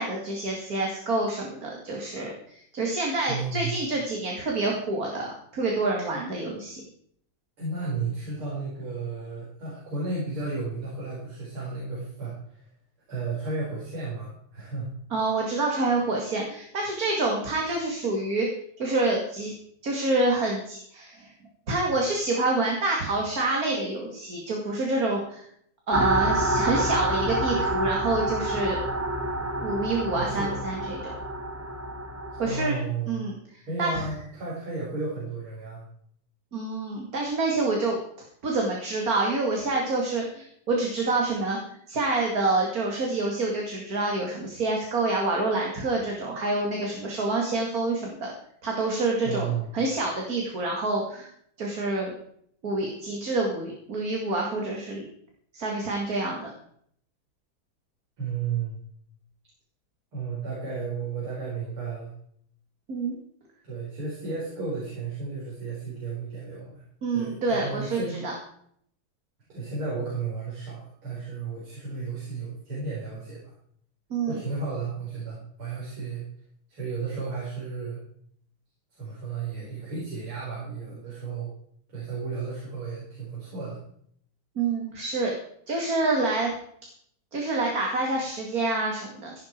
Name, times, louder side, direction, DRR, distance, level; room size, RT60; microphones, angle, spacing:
voice 1, 0.0-6.8 15.1-18.5 18.8-19.5 19.8-21.3 21.7-25.4 25.9-28.8 29.6-31.1 32.4-32.8 33.1-34.0 36.5-38.0 38.4-41.6 41.9-48.3 48.6-51.3 51.6-52.1 52.6-55.0 55.5-56.5 62.9-63.2 67.0-68.3 74.1-74.4 84.6-85.3 85.7-86.5 87.3-89.3, right 2 dB, 40° right, 0 dB, 2.7 m, -27 dB
voice 2, 3.3-3.7 7.6-12.7 13.1-14.9 30.1-30.7 32.4-33.2 33.7-35.8 49.2-49.7 58.2-58.8 60.1-62.1 63.7-66.8 67.1-68.2 69.5-73.4 74.3-76.2 76.7-78.0 79.0-81.5 81.9-83.8, right 4 dB, 75° right, -6 dB, 5.4 m, -33 dB
sound 1, 25.9-32.7, right 1 dB, 10° right, 0.8 m, -28 dB
15.5 x 11.0 x 4.5 m, 0.66 s
omnidirectional pair, 2.4 m